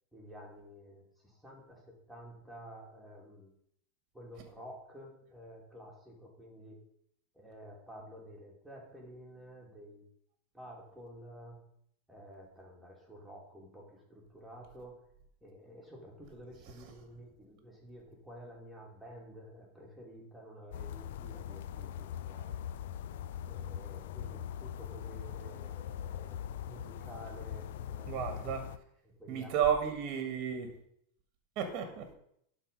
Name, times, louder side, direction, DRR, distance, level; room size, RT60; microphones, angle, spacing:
voice 1, 0.1-3.5 4.1-6.8 7.3-10.1 10.5-11.6 12.1-15.1 15.4-22.6 23.4-26.4 26.7-28.3 29.0-29.6, equal, ahead, -3 dB, 2.5 m, -51 dB
sound 1, 20.7-28.8, left 10 dB, 75° left, 0.4 m, -41 dB
voice 2, 28.1-28.7 29.3-30.8 31.6-32.1, right 8 dB, 45° right, 6 dB, 1.4 m, -32 dB
11.5 x 4.0 x 5.3 m, 0.71 s
supercardioid pair, 135°, 0 cm